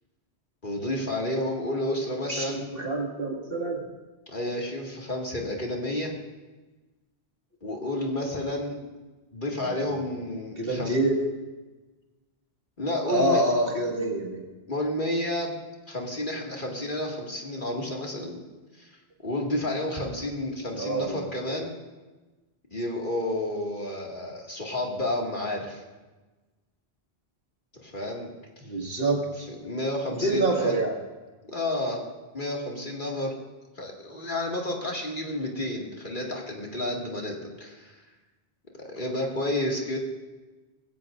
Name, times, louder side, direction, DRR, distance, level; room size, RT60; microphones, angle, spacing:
voice 1, 0.6-2.7 4.3-6.1 7.6-8.8 9.3-11.0 12.8-13.4 14.7-15.6 15.9-18.4 18.8-18.9 19.2-21.7 22.7-25.8 27.7-28.3 29.5-30.8 31.4-32.0 32.3-33.3 33.8-38.0 38.9-40.0, left 1 dB, 50° left, -1 dB, 2.4 m, -31 dB
voice 2, 2.3-3.8 9.6-9.8 10.6-11.2 13.1-14.4 20.7-21.2 28.6-29.5 30.2-30.9, right 2 dB, 60° right, -1 dB, 2.4 m, -26 dB
21.0 x 16.0 x 2.6 m, 1.2 s
omnidirectional pair, 1.1 m